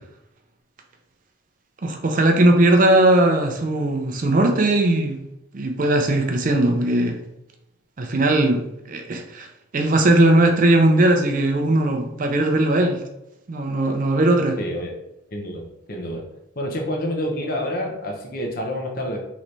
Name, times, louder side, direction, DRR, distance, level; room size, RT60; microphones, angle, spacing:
voice 1, 1.8-5.2 5.5-7.2 8.0-9.5 9.7-13.0 13.5-14.6, right 1 dB, 40° right, 4 dB, 0.4 m, -18 dB
voice 2, 14.6-14.9 15.3-16.2 16.6-19.3, equal, 45° left, 1 dB, 0.7 m, -28 dB
3.2 x 3.0 x 3.9 m, 0.87 s
head